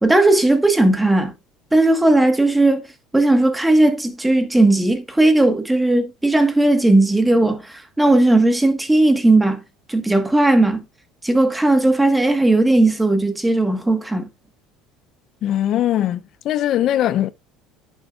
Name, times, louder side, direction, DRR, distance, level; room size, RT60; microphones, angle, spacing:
voice 1, 0.0-1.3 1.7-2.8 3.1-9.6 9.9-10.8 11.2-14.3, right 2 dB, 10° right, 1.6 m, -16 dB
voice 2, 15.4-16.2 16.4-17.3, left 12 dB, 50° left, 0.6 m, -20 dB
10.5 x 7.4 x 2.5 m
cardioid pair, 120°, 0 cm